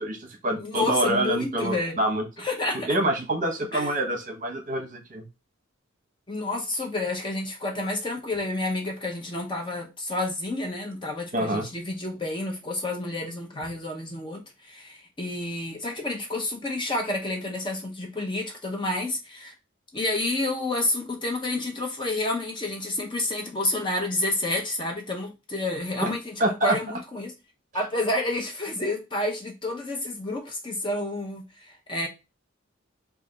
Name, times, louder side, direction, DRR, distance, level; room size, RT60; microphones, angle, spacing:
voice 1, 0.0-2.2 2.9-5.2 11.3-11.7 26.0-26.1 26.4-26.8, right 1 dB, 40° right, 0.8 m, -26 dB
voice 2, 0.6-2.0 2.4-2.9 3.7-3.9 6.3-19.5 19.9-27.3 27.7-32.1, left 2 dB, 25° left, 0.6 m, -29 dB
3.2 x 2.5 x 3.8 m
head